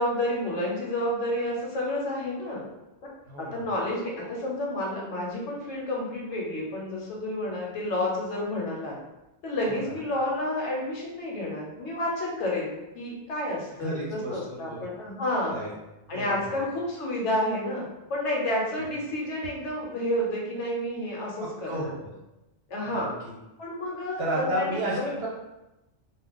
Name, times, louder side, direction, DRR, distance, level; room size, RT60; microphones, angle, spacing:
voice 1, 0.0-2.6 3.4-8.9 9.4-15.6 16.1-17.8 18.1-21.9 22.7-23.1 23.6-25.1, left 1 dB, 70° left, -3 dB, 1.1 m, -30 dB
voice 2, 3.3-3.6 9.7-9.8 13.8-14.8 15.5-15.7 16.1-16.6 21.7-22.1 22.8-23.3 24.2-25.3, right 1 dB, 60° right, -4 dB, 0.8 m, -32 dB
2.3 x 2.3 x 3.5 m, 0.97 s
omnidirectional pair, 1.3 m